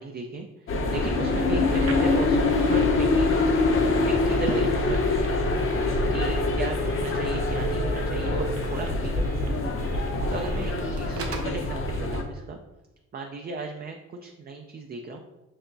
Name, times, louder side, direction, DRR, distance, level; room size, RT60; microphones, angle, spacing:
voice 1, 0.0-3.4 4.0-12.6 13.1-15.2, right 3 dB, 30° right, 3 dB, 0.4 m, -36 dB
sound 1, 0.7-12.2, left 2 dB, 45° left, 0.8 m, -24 dB
Telephone, 1.7-11.6, right 3 dB, 50° right, 0.9 m, -43 dB
6.7 x 2.9 x 2.6 m, 1.1 s
cardioid pair, 90°, 30 cm